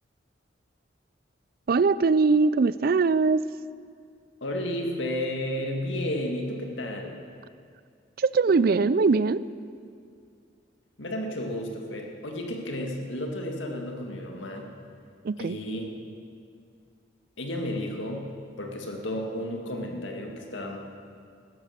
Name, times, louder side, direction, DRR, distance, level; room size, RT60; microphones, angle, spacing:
voice 1, 1.7-3.4 8.2-9.5 15.2-15.6, right 4 dB, 55° right, 17 dB, 0.4 m, -21 dB
voice 2, 4.4-7.2 11.0-14.7 15.4-15.9 17.4-18.3 18.6-20.8, left 1 dB, 90° left, 2 dB, 2.0 m, -32 dB
15.5 x 12.5 x 6.6 m, 2.3 s
head